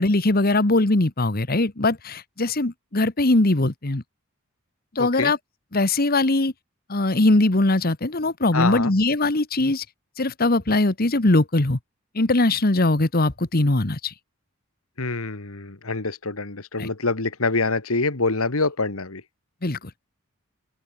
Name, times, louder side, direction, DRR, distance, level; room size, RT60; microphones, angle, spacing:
voice 1, 0.0-4.0 4.9-5.4 5.7-6.5 6.9-9.8 10.2-11.8 12.1-14.1 16.8-16.9 19.6-19.8, left 2 dB, 45° left, 1.4 m, -21 dB
voice 2, 5.0-5.3 8.5-8.9 15.0-19.2, left 3 dB, 90° left, 2.1 m, -25 dB
open air
head